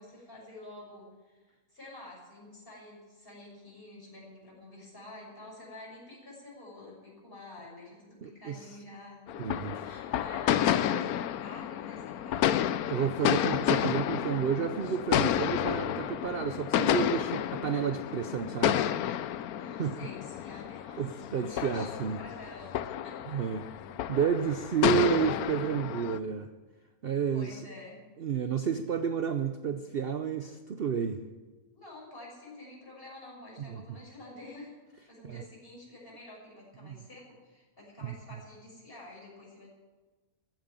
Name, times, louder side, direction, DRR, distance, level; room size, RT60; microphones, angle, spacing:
voice 1, 0.0-9.2 9.5-12.6 19.5-21.0 21.4-23.4 24.4-24.6 27.3-28.0 31.7-34.7 35.0-39.7, left 2 dB, 40° left, -4 dB, 6.5 m, -49 dB
voice 2, 8.2-8.6 9.4-9.9 12.9-18.8 19.8-20.0 21.0-22.2 23.3-23.7 24.1-26.5 27.0-27.6 28.2-31.2 33.6-34.0 35.2-35.4 36.8-37.0 38.0-38.1, right 7 dB, 50° right, 8 dB, 0.8 m, -31 dB
sound 1, 9.3-26.2, left 11 dB, 85° left, 1.1 m, -30 dB
15.0 x 9.2 x 9.0 m, 1.3 s
omnidirectional pair, 1.5 m